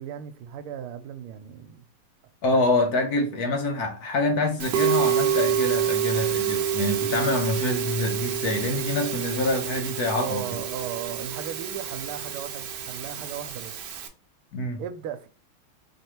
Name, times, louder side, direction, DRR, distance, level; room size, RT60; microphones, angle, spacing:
voice 1, 0.0-1.8 2.5-2.6 7.2-7.3 10.2-13.9 14.8-15.3, right 9 dB, 85° right, 1.5 m, -36 dB
voice 2, 2.4-10.5 14.5-14.8, left 2 dB, 65° left, 1.0 m, -26 dB
Musical instrument, 4.6-14.1, right 9 dB, 65° right, 1.2 m, -28 dB
4.2 x 3.3 x 3.0 m
omnidirectional pair, 2.3 m